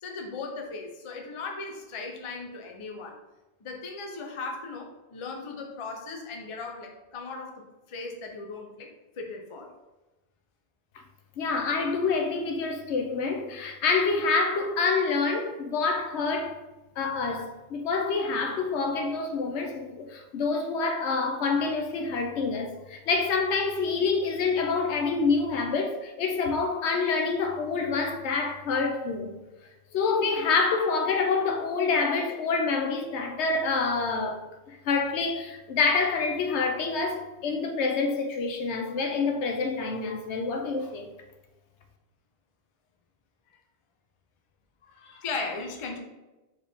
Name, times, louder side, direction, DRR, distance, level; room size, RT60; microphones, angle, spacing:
voice 1, 0.0-3.2 3.6-9.7 29.9-30.0 40.8-40.9 44.8-46.0, left 4 dB, 40° left, 0.5 m, -37 dB
voice 2, 11.4-16.6 17.0-29.3 29.9-41.1, left 4 dB, 75° left, 0.9 m, -27 dB
4.6 x 3.1 x 3.4 m
omnidirectional pair, 1.2 m